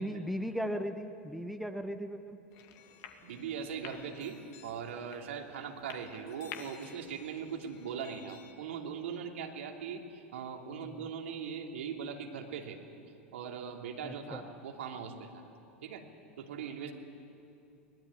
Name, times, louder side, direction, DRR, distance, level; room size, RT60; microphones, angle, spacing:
voice 1, 0.0-2.4 10.8-11.1 14.0-14.5, equal, ahead, 6 dB, 1.3 m, -37 dB
sound 1, 2.5-8.5, left 8 dB, 50° left, 2.4 m, -52 dB
voice 2, 3.2-12.8 13.3-15.4 15.8-16.0 16.4-16.9, right 6 dB, 70° right, 2 dB, 2.9 m, -40 dB
23.0 x 19.5 x 10.0 m, 2.6 s
hypercardioid pair, 90°, 7 cm